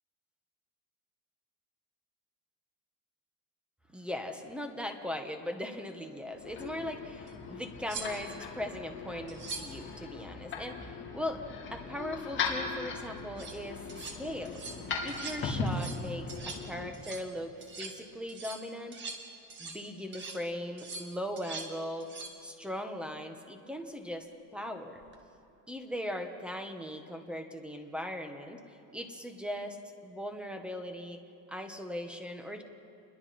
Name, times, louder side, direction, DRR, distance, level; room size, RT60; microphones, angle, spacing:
voice 1, 3.9-11.4 11.7-19.0 19.6-22.1 22.4-24.3 24.5-25.0 25.7-31.2 31.5-32.6, left 1 dB, 5° right, 5 dB, 1.3 m, -39 dB
sound 1, 6.3-16.9, left 4 dB, 35° left, 3.1 m, -39 dB
sound 2, 7.3-7.4 7.9-8.4 9.3-9.8 13.2-13.6 13.9-14.2 14.4-14.8 15.1-15.4 15.7-16.0 16.3-16.7 16.9-17.3 17.6-18.0 18.3-19.9 20.1-20.4 20.8-21.7 22.0-22.4 25.0-25.1, right 4 dB, 30° right, 2.0 m, -43 dB
28.5 x 22.0 x 4.3 m, 2.8 s
cardioid pair, 150°, 35 cm